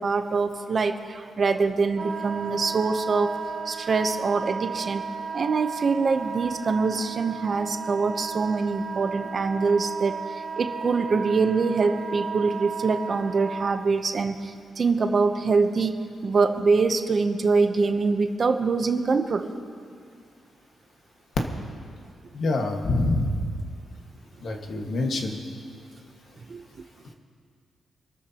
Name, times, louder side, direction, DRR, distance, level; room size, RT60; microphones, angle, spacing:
voice 1, 0.0-3.3 3.7-5.1 5.3-15.9 16.2-19.5 26.5-26.6, right 4 dB, 40° right, 7 dB, 0.8 m, -24 dB
Wind instrument woodwind instrument, 2.0-13.8, right 5 dB, 60° right, 2.1 m, -34 dB
voice 2, 22.3-23.3 24.4-25.4, left 2 dB, 60° left, 2 dB, 1.6 m, -25 dB
26.5 x 13.5 x 2.9 m, 2.2 s
cardioid pair, 125°, 0 cm